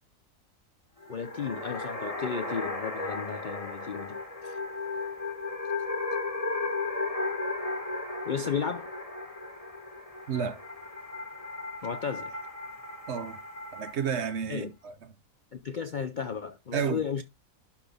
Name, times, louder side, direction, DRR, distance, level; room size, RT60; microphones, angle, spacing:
sound 1, 1.0-14.4, left 3 dB, 25° left, 1.7 m, -35 dB
voice 1, 1.1-4.2 8.3-8.9 11.8-12.4 14.5-14.7 15.5-17.2, left 6 dB, 55° left, 0.5 m, -34 dB
voice 2, 10.3-10.6 13.1-13.4 13.7-14.9 16.7-17.0, right 7 dB, 55° right, 1.0 m, -31 dB
11.5 x 4.1 x 3.4 m
omnidirectional pair, 1.5 m